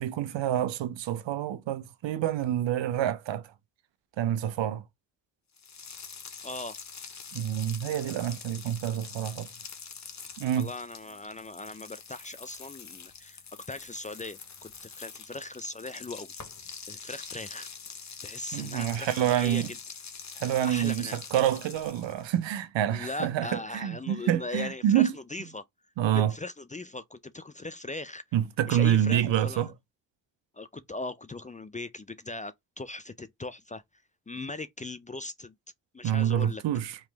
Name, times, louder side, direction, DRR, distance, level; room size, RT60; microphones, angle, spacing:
voice 1, 0.0-3.5 4.2-4.8 7.3-9.5 10.4-10.7 18.5-19.7 20.4-25.1 26.0-26.3 28.3-29.7 36.0-37.0, right 11 dB, 70° right, 0.8 m, -27 dB
sound 1, 5.6-22.4, left 6 dB, 35° left, 1.0 m, -45 dB
voice 2, 6.4-6.8 10.6-13.4 13.7-16.3 16.9-17.7 18.2-19.8 20.6-21.2 22.9-25.6 26.1-28.2 28.7-29.6 30.5-33.8 34.3-35.5 35.9-36.6, left 2 dB, 15° left, 0.4 m, -39 dB
3.2 x 3.0 x 3.3 m
supercardioid pair, 45°, 46 cm